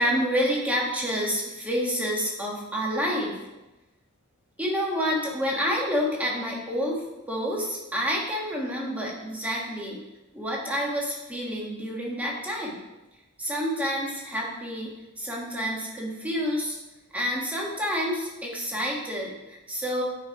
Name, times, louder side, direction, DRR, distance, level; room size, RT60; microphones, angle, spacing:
voice 1, 0.0-3.4 4.6-7.0 7.3-10.0 10.3-12.8 13.4-16.8 17.1-20.0, equal, 5° right, -3 dB, 1.6 m, -28 dB
10.0 x 4.5 x 4.6 m, 1.0 s
head